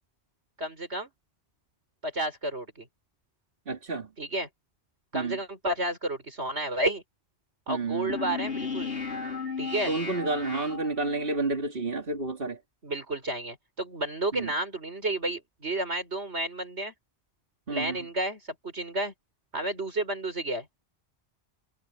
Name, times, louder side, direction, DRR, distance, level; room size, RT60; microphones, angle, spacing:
voice 1, 0.6-1.1 2.0-2.9 4.2-4.5 5.1-7.0 7.7-8.9 9.6-9.9 12.8-16.9 17.7-19.1 19.5-20.7, right 1 dB, 75° right, 5.7 m, -31 dB
voice 2, 3.7-4.1 5.1-5.4 7.7-8.1 9.9-12.6 14.3-14.5 17.7-18.0, right 3 dB, 55° right, 2.7 m, -30 dB
sound 1, 8.1-11.4, left 5 dB, 85° left, 3.1 m, -35 dB
omnidirectional pair, 1.1 m